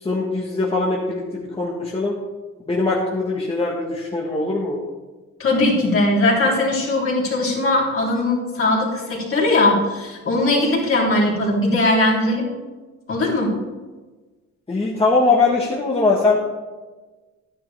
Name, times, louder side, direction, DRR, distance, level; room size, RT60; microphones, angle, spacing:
voice 1, 0.0-2.1 2.7-4.8 14.7-16.4, left 3 dB, 20° left, -4 dB, 1.5 m, -21 dB
voice 2, 5.4-12.5 13.1-13.5, left 2 dB, 45° left, -4 dB, 3.2 m, -19 dB
11.0 x 9.7 x 3.4 m, 1.3 s
cardioid pair, 90°, 30 cm